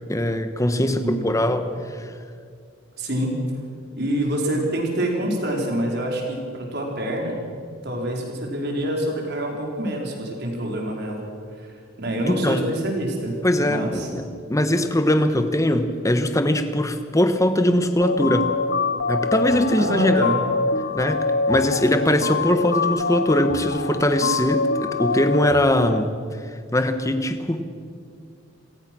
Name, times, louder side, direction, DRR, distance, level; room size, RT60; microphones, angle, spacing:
voice 1, 0.1-2.1 12.3-12.7 13.4-18.5 19.1-20.3 20.9-26.1 26.7-27.6, left 1 dB, 15° left, 9 dB, 1.2 m, -21 dB
voice 2, 0.8-1.3 3.0-3.4 4.0-7.4 7.8-11.2 11.6-11.7 12.0-13.3 13.6-14.1 19.8-20.4, right 1 dB, 50° right, 0 dB, 4.6 m, -26 dB
sound 1, 18.0-26.0, left 4 dB, 50° left, 0.8 m, -25 dB
28.0 x 17.5 x 6.2 m, 2.2 s
head